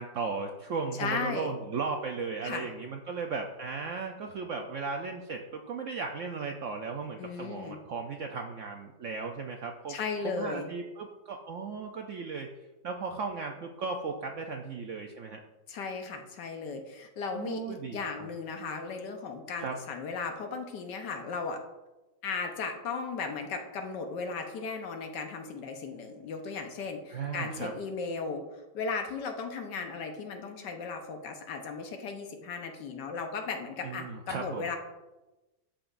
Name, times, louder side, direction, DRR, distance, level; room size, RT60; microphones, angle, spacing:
voice 1, 0.0-10.0 10.3-15.4 17.3-18.3 19.6-19.8 27.1-27.7 33.8-34.7, right 4 dB, 85° right, 3 dB, 0.6 m, -36 dB
voice 2, 1.0-1.5 2.4-2.7 7.2-7.8 9.9-10.7 15.7-21.6 22.2-34.8, left 4 dB, 75° left, 4 dB, 1.5 m, -36 dB
13.0 x 5.1 x 2.5 m, 1.0 s
omnidirectional pair, 2.0 m